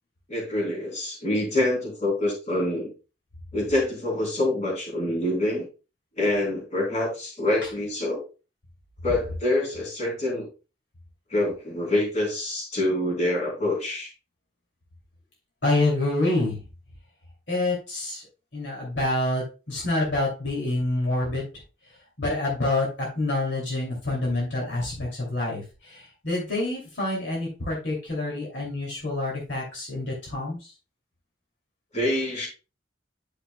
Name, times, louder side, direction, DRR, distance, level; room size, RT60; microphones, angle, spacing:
voice 1, 0.3-2.9 3.5-5.7 6.2-8.2 9.0-10.5 11.3-14.1 31.9-32.5, left 1 dB, 40° left, -2 dB, 3.7 m, -26 dB
voice 2, 15.6-16.6 17.5-18.3 18.5-21.5 22.2-30.7, left 2 dB, 70° left, -2 dB, 2.7 m, -27 dB
10.0 x 5.9 x 2.2 m, 0.31 s
head